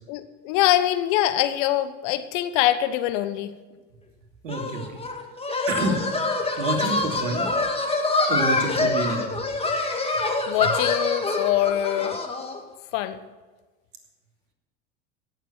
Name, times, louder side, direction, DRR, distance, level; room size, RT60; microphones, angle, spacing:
voice 1, 0.1-3.5 10.5-12.2 12.9-13.2, left 13 dB, 65° left, 12 dB, 1.1 m, -23 dB
voice 2, 4.4-5.0 5.7-6.0 6.6-7.5 8.3-9.4, right 3 dB, 80° right, 2 dB, 2.8 m, -28 dB
sound 1, 4.5-12.6, left 3 dB, 15° left, 2.2 m, -26 dB
17.0 x 7.5 x 7.1 m, 1.3 s
hypercardioid pair, 75°, 38 cm